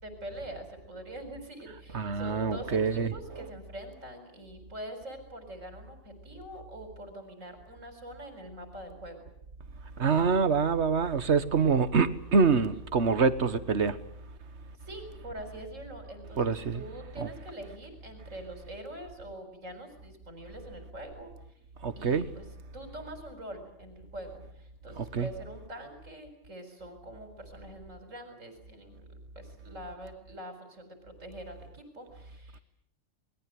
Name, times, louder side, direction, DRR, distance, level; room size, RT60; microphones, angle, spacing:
voice 1, 0.0-9.2 14.8-21.3 22.0-22.4 22.7-32.6, right 1 dB, 85° right, 4.9 m, -44 dB
voice 2, 1.9-3.5 10.0-14.0 16.4-16.8 17.2-17.3 21.8-22.3 25.0-25.3, right 5 dB, 60° right, 1.6 m, -26 dB
28.0 x 21.5 x 7.7 m
omnidirectional pair, 1.3 m